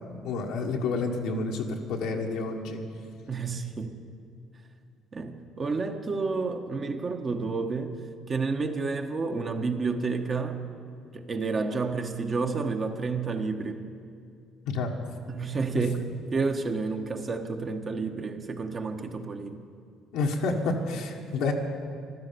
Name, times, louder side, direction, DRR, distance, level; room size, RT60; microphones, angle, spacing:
voice 1, 0.0-2.8 14.7-14.9 15.7-15.8 20.1-21.5, left 3 dB, 85° left, -1 dB, 1.5 m, -29 dB
voice 2, 3.3-3.9 5.1-8.0 8.3-10.6 11.1-13.8 15.2-19.6, right 4 dB, 40° right, 5 dB, 1.4 m, -30 dB
15.0 x 12.5 x 6.9 m, 2.3 s
supercardioid pair, 80°, 0 cm